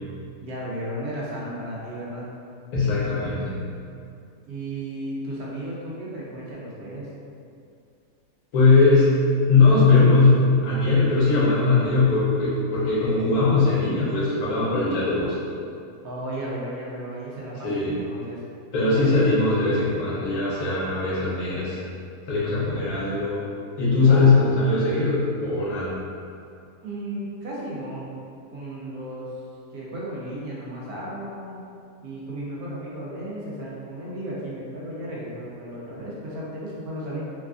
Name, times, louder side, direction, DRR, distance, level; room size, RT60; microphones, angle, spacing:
voice 1, 0.4-2.3 4.5-7.1 16.0-18.4 18.7-19.4 23.9-24.5 26.8-28.2 28.5-29.4 29.7-31.6 32.0-37.2, right 1 dB, 80° right, -6 dB, 1.2 m, -34 dB
voice 2, 2.7-3.6 8.5-9.1 9.5-15.4 17.6-17.9 18.7-21.8 22.3-23.4 23.8-25.9, left 3 dB, 85° left, -7 dB, 1.3 m, -20 dB
3.3 x 2.3 x 2.4 m, 2.5 s
omnidirectional pair, 1.6 m